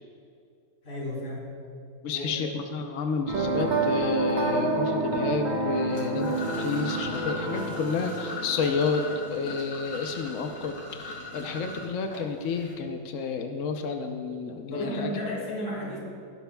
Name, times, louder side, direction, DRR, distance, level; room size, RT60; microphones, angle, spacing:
voice 1, 0.8-1.4 2.1-2.4 14.7-16.0, equal, 40° left, -5 dB, 3.5 m, -33 dB
voice 2, 2.0-15.2, left 5 dB, 70° left, 5 dB, 0.7 m, -30 dB
sound 1, 3.3-9.5, right 3 dB, 30° right, 1.0 m, -29 dB
sound 2, 5.9-12.7, left 2 dB, 90° left, 3.4 m, -39 dB
18.0 x 11.5 x 2.3 m, 2.3 s
omnidirectional pair, 2.2 m